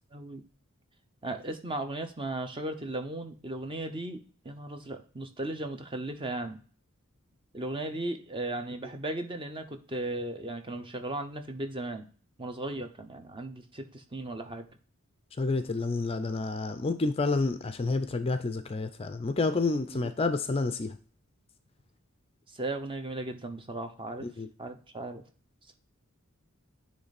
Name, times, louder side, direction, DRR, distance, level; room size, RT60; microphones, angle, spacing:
voice 1, 0.1-0.4 1.2-4.2 4.4-6.6 7.5-12.1 12.4-14.7 19.7-20.1 22.5-24.3 24.6-25.2, right 2 dB, 25° right, 7 dB, 0.7 m, -36 dB
voice 2, 15.4-21.0 24.2-24.5, left 3 dB, 25° left, 10 dB, 0.4 m, -29 dB
9.6 x 3.2 x 4.1 m, 0.41 s
head